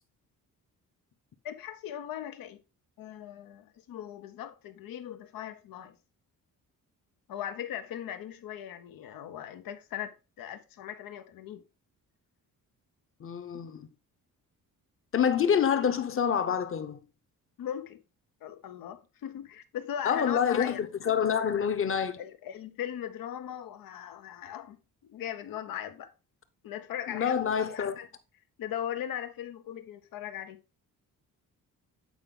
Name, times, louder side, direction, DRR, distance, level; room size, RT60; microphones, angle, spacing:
voice 1, 1.4-2.6 3.0-6.0 7.3-11.6 17.6-18.0 18.4-20.8 22.2-24.8 25.0-26.1 26.6-28.1 28.6-30.6, left 10 dB, 90° left, 1.0 m, -39 dB
voice 2, 13.2-13.9 15.1-17.0 20.0-20.8 21.0-22.2 27.1-27.9, left 8 dB, 40° left, 0.9 m, -27 dB
8.7 x 4.8 x 3.7 m
cardioid pair, 140°, 34 cm